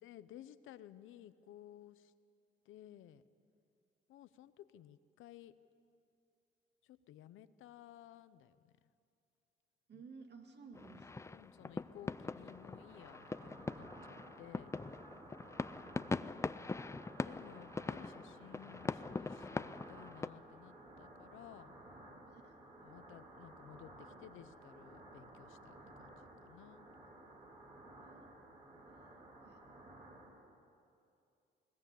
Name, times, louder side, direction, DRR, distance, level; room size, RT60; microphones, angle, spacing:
voice 1, 0.0-2.1 2.6-3.2 4.1-5.5 6.8-8.7 9.9-10.0 11.2-14.7 16.4-16.7 17.2-21.7 22.8-26.9 28.7-28.8, left 12 dB, 85° left, 14 dB, 0.8 m, -57 dB
voice 2, 9.9-11.4 21.0-21.1 22.3-22.6 28.0-28.3 29.4-29.6, right 5 dB, 60° right, 4 dB, 2.3 m, -56 dB
sound 1, 10.7-20.3, left 3 dB, 15° left, 0.4 m, -42 dB
sound 2, 11.7-30.3, right 1 dB, 35° right, 5.1 m, -56 dB
20.5 x 19.0 x 8.4 m, 2.5 s
cardioid pair, 90°, 20 cm